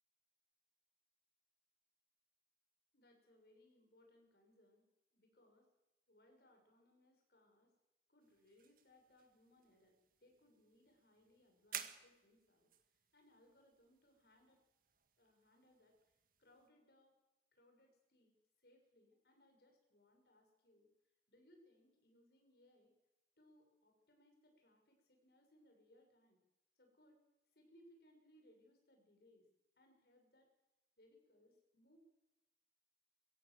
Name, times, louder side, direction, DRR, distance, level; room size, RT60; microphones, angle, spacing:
voice 1, 2.9-4.9 5.1-5.7 6.1-7.7 8.1-14.6 15.2-17.1 17.5-20.9 21.3-22.9 23.4-26.4 26.8-27.2 27.5-29.4 29.8-30.5 31.0-32.0, left 1 dB, 60° left, 3 dB, 6.4 m, -70 dB
sound 1, 8.2-16.7, right 9 dB, 50° right, 1.8 m, -56 dB
24.5 x 15.5 x 7.7 m, 0.96 s
head